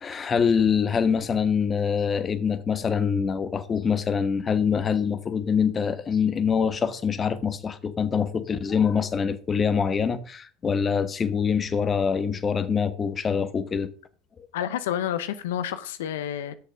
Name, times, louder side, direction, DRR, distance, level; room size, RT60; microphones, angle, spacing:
voice 1, 0.0-13.9, left 6 dB, 30° left, 1.2 m, -24 dB
voice 2, 14.5-16.5, left 10 dB, 85° left, 0.8 m, -29 dB
8.1 x 6.7 x 6.2 m
hypercardioid pair, 95°, 0 cm